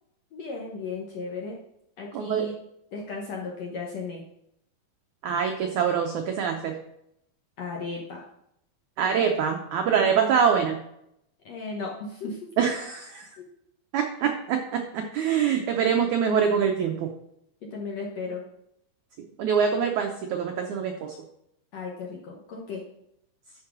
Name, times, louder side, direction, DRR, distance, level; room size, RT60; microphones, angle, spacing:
voice 1, 0.3-1.6 2.0-2.5 2.9-4.2 7.6-8.2 9.9-10.4 11.5-12.4 13.4-13.5 17.6-18.4 21.7-22.8, left 4 dB, 65° left, -2 dB, 1.7 m, -35 dB
voice 2, 2.1-2.5 5.2-6.8 9.0-10.8 12.6-13.3 13.9-17.1 19.4-21.1, right 7 dB, 80° right, 3 dB, 1.7 m, -24 dB
11.5 x 4.7 x 6.1 m, 0.78 s
omnidirectional pair, 4.5 m